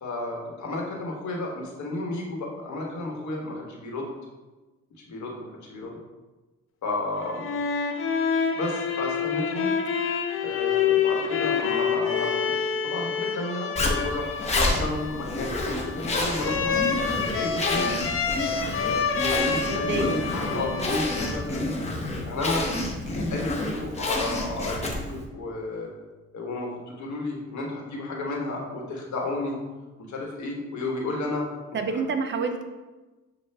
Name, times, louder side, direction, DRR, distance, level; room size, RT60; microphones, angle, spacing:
voice 1, 0.0-4.1 5.0-6.0 6.8-7.5 8.5-9.7 10.4-16.8 17.3-17.9 19.0-21.7 22.3-22.6 23.2-25.9 26.3-29.6 30.1-31.4 31.9-32.0, left 2 dB, 70° left, -1 dB, 1.2 m, -32 dB
sound 1, 7.2-21.8, left 6 dB, 45° left, 0.5 m, -28 dB
Zipper (clothing), 13.8-25.2, left 2 dB, 20° left, 0.8 m, -29 dB
voice 2, 19.7-20.2 20.5-20.8 31.7-32.6, right 4 dB, 40° right, 6 dB, 0.5 m, -28 dB
6.7 x 2.3 x 3.3 m, 1.2 s
cardioid pair, 90°, 30 cm